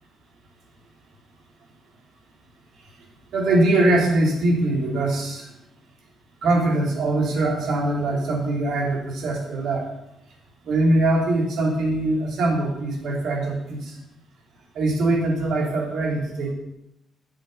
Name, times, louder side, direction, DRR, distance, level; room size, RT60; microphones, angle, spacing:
voice 1, 3.3-5.5 6.4-9.8 10.6-14.0 14.7-16.5, right 2 dB, 75° right, 0 dB, 3.1 m, -22 dB
12.0 x 7.8 x 5.5 m, 0.87 s
cardioid pair, 90°, 0 cm